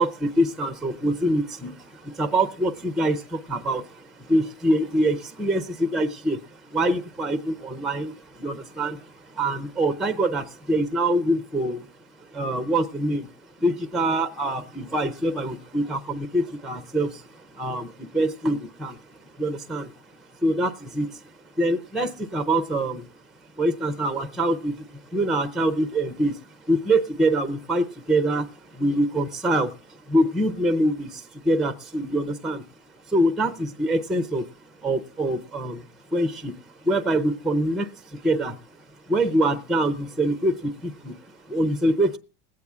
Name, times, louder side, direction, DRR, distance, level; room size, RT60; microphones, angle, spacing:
voice 1, 0.0-13.3 13.6-21.1 21.5-23.1 23.6-32.6 33.0-42.2, right 1 dB, ahead, 0.5 m, -25 dB
20.0 x 8.4 x 3.5 m
supercardioid pair, 145°, 36 cm